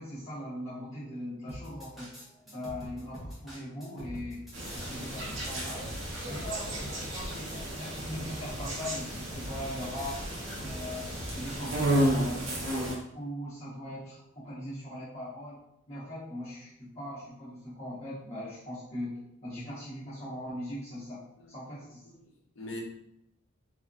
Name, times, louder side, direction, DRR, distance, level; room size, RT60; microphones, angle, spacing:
voice 1, 0.0-2.1 2.5-4.5 4.7-5.9 6.2-10.2 10.6-15.6 15.9-21.2 21.5-22.1, left 1 dB, 35° left, -14 dB, 0.9 m, -40 dB
sound 1, 1.5-12.1, equal, ahead, 0.7 m, -44 dB
sound 2, 4.5-13.0, right 1 dB, 70° right, 0.7 m, -33 dB
voice 2, 22.0-22.8, left 2 dB, 75° left, 0 dB, 0.6 m, -43 dB
2.7 x 2.3 x 2.3 m, 0.80 s
head